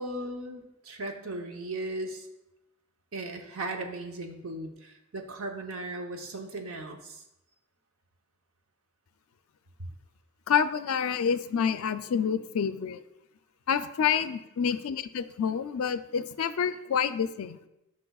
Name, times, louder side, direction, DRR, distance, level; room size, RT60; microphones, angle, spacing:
voice 1, 0.0-2.3 3.1-7.2, right 2 dB, 70° right, 4 dB, 0.9 m, -37 dB
voice 2, 10.5-13.0 13.7-17.7, left 7 dB, 70° left, 12 dB, 0.4 m, -28 dB
11.5 x 5.3 x 2.3 m, 0.90 s
head